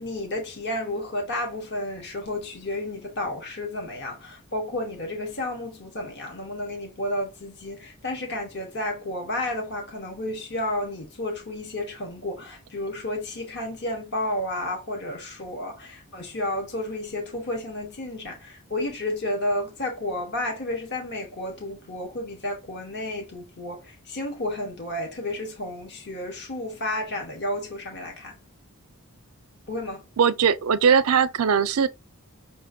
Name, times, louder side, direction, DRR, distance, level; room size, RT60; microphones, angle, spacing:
voice 1, 0.0-28.3 29.7-30.0, left 1 dB, 50° left, 1.1 m, -31 dB
voice 2, 30.2-31.9, right 6 dB, 80° right, 0.5 m, -20 dB
5.8 x 3.0 x 2.6 m
head